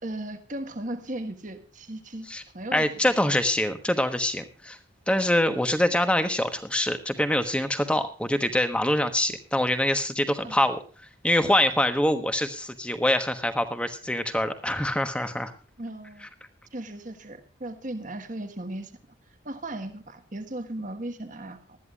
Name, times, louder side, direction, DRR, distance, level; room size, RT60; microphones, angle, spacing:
voice 1, 0.0-2.3 2.5-3.1 10.4-10.5 15.8-16.3 16.7-18.9 19.4-21.8, right 1 dB, 40° right, 7 dB, 1.5 m, -36 dB
voice 2, 2.7-4.8 5.1-10.8 11.2-15.5, left 1 dB, 5° left, 8 dB, 1.1 m, -25 dB
19.5 x 13.0 x 2.4 m, 0.37 s
head